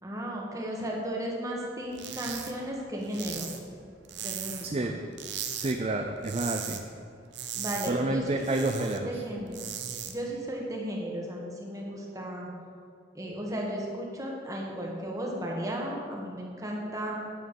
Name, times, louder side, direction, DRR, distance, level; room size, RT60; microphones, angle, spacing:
voice 1, 0.0-3.6 4.2-4.9 7.5-9.6 10.1-12.5 13.1-17.2, equal, 20° right, -2 dB, 1.6 m, -35 dB
sound 1, 1.9-2.5 2.8-4.8 5.1-5.7 6.1-6.8 7.1-9.0 9.4-10.1, right 8 dB, 70° right, 0.9 m, -37 dB
voice 2, 4.6-5.0 5.6-6.8 7.9-9.1, right 2 dB, 35° right, 4 dB, 0.5 m, -29 dB
9.4 x 6.5 x 7.0 m, 2.4 s
head